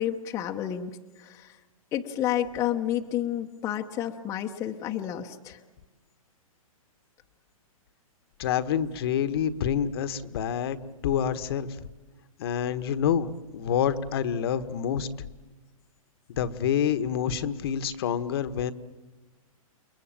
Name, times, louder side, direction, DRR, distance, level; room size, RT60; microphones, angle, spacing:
voice 1, 0.0-1.6 1.9-5.6, left 11 dB, 15° left, 3 dB, 1.0 m, -30 dB
voice 2, 8.4-10.8 11.0-11.9 12.4-15.3 16.3-18.7, left 8 dB, 40° left, 12 dB, 1.3 m, -27 dB
29.5 x 22.5 x 9.0 m, 1.2 s
hypercardioid pair, 160°, 19 cm